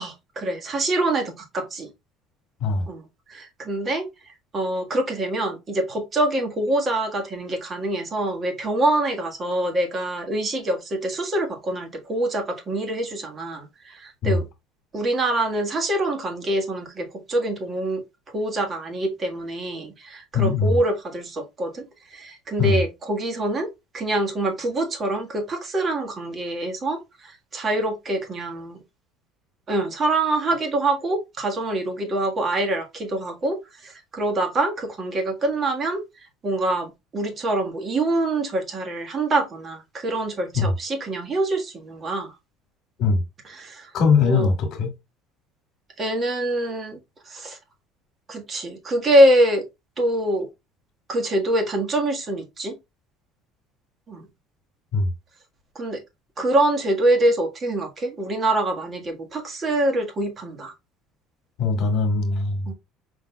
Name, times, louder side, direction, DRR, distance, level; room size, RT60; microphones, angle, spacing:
voice 1, 0.0-1.9 2.9-3.0 3.3-4.1 4.5-14.4 14.9-18.0 18.3-23.7 23.9-28.8 29.7-36.0 36.4-42.3 43.5-43.9 44.2-44.5 46.0-47.0 47.2-47.6 48.3-49.6 50.0-50.5 51.1-52.8 54.1-54.3 55.7-56.0 56.4-60.7 62.7-62.8, right 1 dB, 30° right, 1.6 m, -25 dB
voice 2, 20.3-20.8 22.6-22.8 40.5-40.7 43.0-43.2 43.9-44.9 54.9-55.1 61.6-62.7, left 4 dB, 55° left, 1.7 m, -21 dB
5.0 x 3.8 x 2.3 m
cardioid pair, 120°, 0 cm